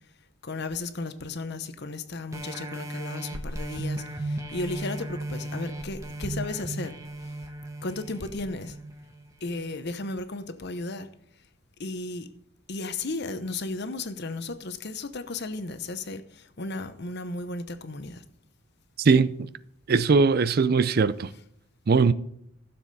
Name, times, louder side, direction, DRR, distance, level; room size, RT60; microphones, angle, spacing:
voice 1, 0.4-6.9 7.2-7.4 7.8-8.8 9.4-11.1 11.8-12.3 12.7-18.2, left 3 dB, 50° left, 0.9 m, -34 dB
sound 1, 2.3-9.5 10.0-10.1, right 1 dB, 15° right, 1.1 m, -36 dB
voice 2, 19.0-19.5 19.9-21.3 21.9-22.1, right 4 dB, 45° right, 0.4 m, -20 dB
15.5 x 7.1 x 4.1 m
head